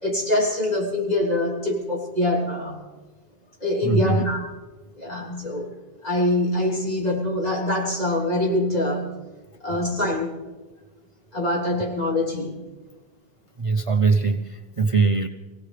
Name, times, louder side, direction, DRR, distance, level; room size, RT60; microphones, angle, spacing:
voice 1, 0.0-2.8 3.6-4.4 5.0-5.7 6.0-9.1 9.6-10.3 11.3-12.6, left 1 dB, 40° left, -4 dB, 3.5 m, -24 dB
voice 2, 3.8-4.2 9.7-9.8 13.6-15.3, right 4 dB, 35° right, 5 dB, 0.7 m, -21 dB
25.5 x 17.0 x 3.3 m, 1.3 s
omnidirectional pair, 1.1 m